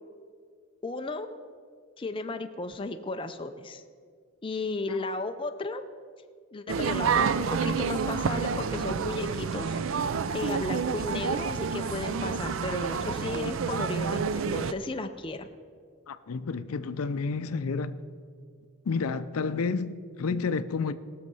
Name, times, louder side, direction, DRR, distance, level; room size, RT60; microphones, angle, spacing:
voice 1, 0.8-1.4 2.0-3.8 4.4-5.8 6.5-9.8 10.3-15.5, left 2 dB, 25° left, 0.4 m, -34 dB
sound 1, 6.7-14.7, right 6 dB, 60° right, 0.4 m, -29 dB
voice 2, 16.1-17.9 18.9-20.9, left 4 dB, 75° left, 0.5 m, -30 dB
19.0 x 6.5 x 5.4 m
head